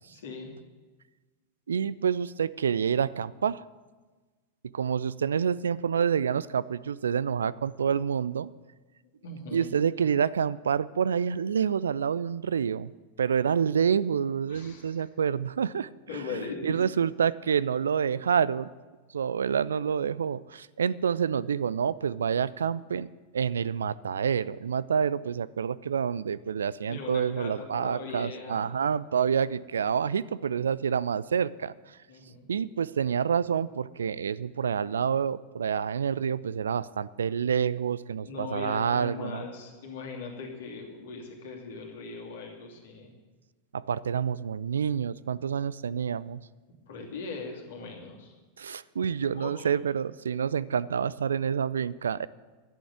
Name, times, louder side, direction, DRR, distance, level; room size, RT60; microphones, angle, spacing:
voice 1, 0.1-0.5 9.2-9.8 10.0-10.2 14.5-15.0 16.1-16.8 26.9-28.7 32.1-32.5 38.2-43.1 46.9-48.3 49.3-49.7, left 4 dB, 60° left, 0 dB, 2.7 m, -40 dB
voice 2, 1.7-3.6 4.7-8.5 9.5-12.9 13.2-15.9 16.6-18.7 19.1-23.1 23.3-32.0 32.5-39.4 43.7-46.4 48.6-52.3, right 7 dB, 70° right, 19 dB, 0.3 m, -28 dB
11.0 x 8.5 x 9.1 m, 1.3 s
figure-of-eight pair, 90°, 0 cm